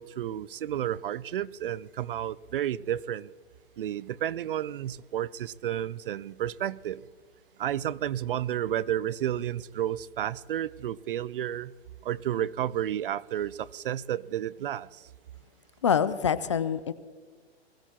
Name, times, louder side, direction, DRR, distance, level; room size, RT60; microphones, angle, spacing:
voice 1, 0.0-3.3 3.8-7.0 7.6-11.7 12.0-15.1, right 11 dB, 55° right, 0.4 m, -31 dB
voice 2, 15.8-16.9, left 7 dB, 30° left, 0.4 m, -25 dB
21.0 x 15.5 x 2.9 m
hypercardioid pair, 155°, 33 cm